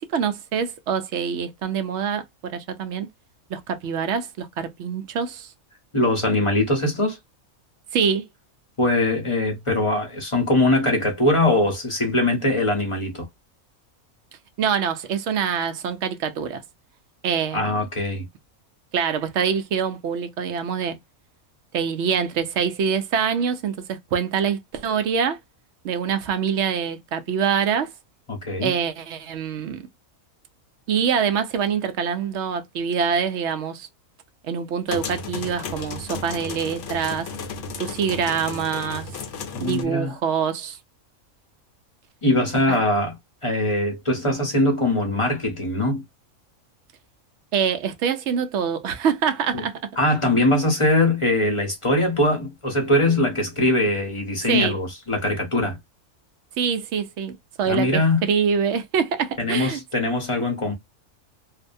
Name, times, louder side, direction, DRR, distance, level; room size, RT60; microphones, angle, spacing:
voice 1, 0.0-3.1 3.5-5.5 7.9-8.2 14.6-16.6 17.2-17.7 18.9-21.0 21.7-25.4 25.8-27.9 28.6-29.8 30.9-33.9 34.4-37.3 37.8-39.1 39.6-40.8 42.7-42.8 47.5-49.8 54.5-54.8 56.6-59.8, right 7 dB, 65° right, 0.8 m, -25 dB
voice 2, 5.9-7.2 8.8-13.3 17.5-18.3 28.3-28.7 39.5-40.1 42.2-43.2 43.4-46.0 49.5-49.6 50.0-55.8 57.7-58.3 59.4-60.7, left 1 dB, 30° left, 0.7 m, -22 dB
sound 1, 34.9-39.8, left 4 dB, 65° left, 0.9 m, -34 dB
2.6 x 2.1 x 2.5 m
omnidirectional pair, 1.5 m